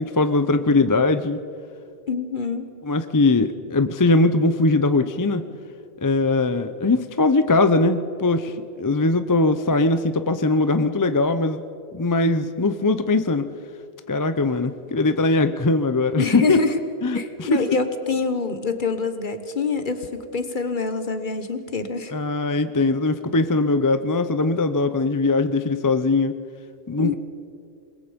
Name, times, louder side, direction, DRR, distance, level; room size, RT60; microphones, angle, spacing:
voice 1, 0.0-1.4 2.8-5.4 6.0-11.6 11.9-13.5 14.1-16.6 17.0-17.8 22.1-26.3 26.9-27.2, left 3 dB, 25° left, 10 dB, 0.5 m, -21 dB
voice 2, 2.1-2.7 16.1-16.7 17.1-22.1 27.0-27.2, left 4 dB, 50° left, 9 dB, 1.4 m, -25 dB
27.5 x 21.0 x 5.2 m, 2.4 s
omnidirectional pair, 1.1 m